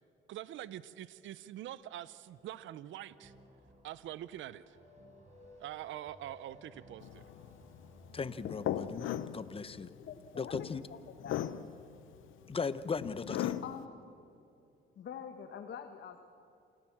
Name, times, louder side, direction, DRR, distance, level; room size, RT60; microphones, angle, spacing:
voice 1, 0.3-3.3 3.8-4.8 5.6-7.3, right 12 dB, 75° right, 17 dB, 0.6 m, -44 dB
sound 1, 2.3-9.3, equal, 35° right, 4.6 m, -59 dB
sound 2, 7.0-13.8, left 11 dB, 80° left, 0.8 m, -38 dB
voice 2, 8.1-9.9 10.4-10.8 12.5-13.6, left 5 dB, 30° left, 15 dB, 0.9 m, -38 dB
voice 3, 10.0-11.5 13.6-13.9 15.0-16.2, left 8 dB, 65° left, 6 dB, 1.3 m, -46 dB
28.0 x 15.0 x 7.4 m, 2.6 s
cardioid pair, 90°, 20 cm